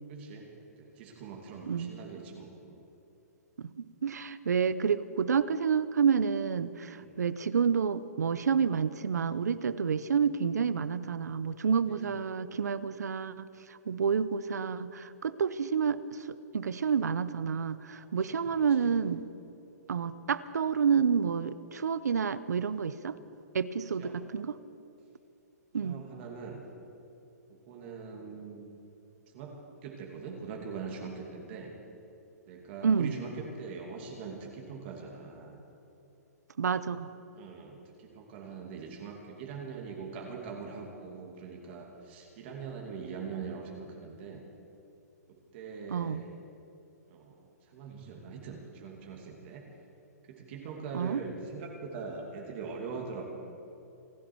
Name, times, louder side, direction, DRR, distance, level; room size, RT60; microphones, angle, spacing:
voice 1, 0.1-2.8 6.9-7.2 11.9-12.1 14.0-14.1 17.9-18.9 24.0-24.2 25.8-26.6 27.7-28.7 29.3-31.7 32.5-35.6 37.3-44.4 45.3-46.3 47.1-47.4 47.7-49.7 50.3-53.2, right 5 dB, 45° right, 0 dB, 2.5 m, -42 dB
voice 2, 3.6-16.0 16.5-19.3 19.9-23.2 23.5-24.6 25.7-26.0 32.8-33.1 36.6-37.1 45.9-46.2 50.9-51.2, right 6 dB, 80° right, 15 dB, 0.8 m, -29 dB
28.0 x 11.0 x 4.7 m, 2.8 s
hypercardioid pair, 135°, 9 cm